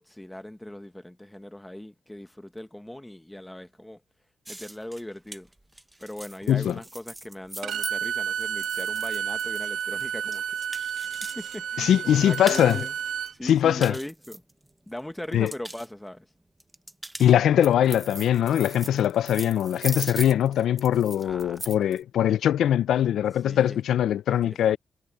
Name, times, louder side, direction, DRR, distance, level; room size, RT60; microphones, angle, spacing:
voice 1, 0.0-4.0 4.5-5.5 6.0-13.0 13.3-14.4 14.9-16.3 21.1-22.0 23.4-23.8 24.3-24.8, left 1 dB, 5° left, 1.1 m, -40 dB
sound 1, 4.4-11.6 11.9-12.9 13.2-14.9 15.2-15.9 16.6-22.0, right 1 dB, 10° right, 0.8 m, -40 dB
Bowed string instrument, 7.6-13.3, right 8 dB, 75° right, 1.4 m, -31 dB
voice 2, 11.8-12.8 13.4-13.9 15.3-15.5 17.2-24.8, left 10 dB, 85° left, 0.4 m, -22 dB
cardioid pair, 130°, 0 cm